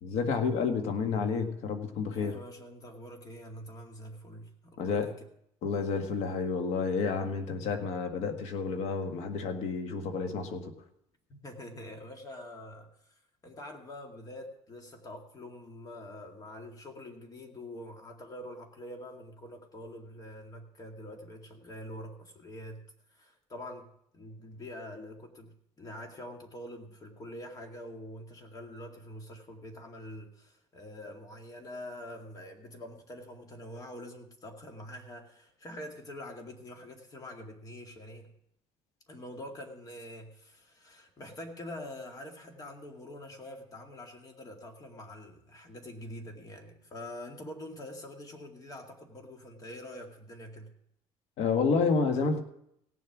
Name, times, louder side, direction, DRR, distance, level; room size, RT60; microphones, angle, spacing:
voice 1, 0.0-2.3 4.8-5.1 5.6-10.7 51.4-52.4, left 5 dB, 80° left, 6 dB, 1.6 m, -30 dB
voice 2, 2.1-5.2 11.3-38.3 39.1-50.7, left 1 dB, 35° left, 3 dB, 2.2 m, -45 dB
17.0 x 7.5 x 6.1 m, 0.75 s
cardioid pair, 120°, 11 cm